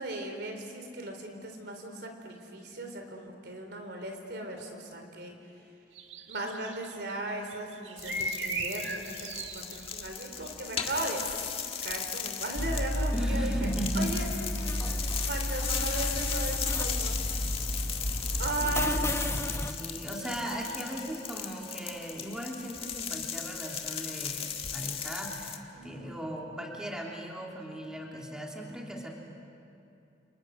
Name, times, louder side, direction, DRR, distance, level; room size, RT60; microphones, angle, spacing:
voice 1, 0.0-5.3 6.3-11.2 11.5-13.7 13.9-14.3 15.2-17.2 18.4-19.2 25.7-26.2, right 2 dB, 65° right, 4 dB, 3.8 m, -37 dB
sound 1, 5.9-7.1 7.5-10.3, right 2 dB, 85° right, 1.9 m, -36 dB
sound 2, 8.0-25.6, left 7 dB, 35° left, 1.7 m, -37 dB
sound 3, 12.6-19.7, left 1 dB, 15° left, 1.1 m, -32 dB
voice 2, 13.1-14.1 18.6-29.1, equal, 5° right, -2 dB, 2.9 m, -37 dB
29.5 x 29.0 x 6.4 m, 2.7 s
head